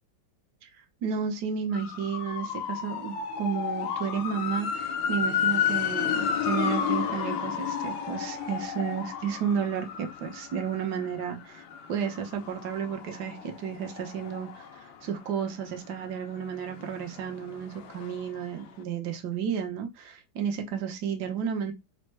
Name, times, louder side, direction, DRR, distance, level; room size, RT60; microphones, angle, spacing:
voice 1, 1.0-11.6 11.9-21.7, right 7 dB, 65° right, 1.4 m, -32 dB
sound 1, 1.7-15.5 15.9-18.4 18.7-18.8, left 7 dB, 90° left, 1.5 m, -32 dB
4.2 x 2.1 x 4.5 m
omnidirectional pair, 2.0 m